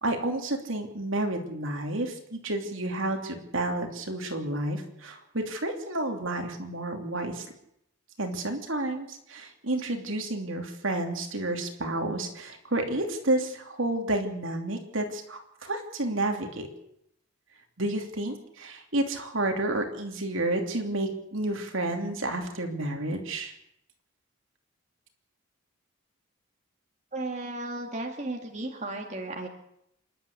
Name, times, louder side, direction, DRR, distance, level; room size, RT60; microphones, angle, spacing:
voice 1, 0.0-7.4 8.2-16.7 17.8-23.5, right 2 dB, 70° right, 3 dB, 3.0 m, -30 dB
voice 2, 27.1-29.5, right 2 dB, 35° right, 2 dB, 2.2 m, -34 dB
27.5 x 11.5 x 8.4 m, 0.77 s
head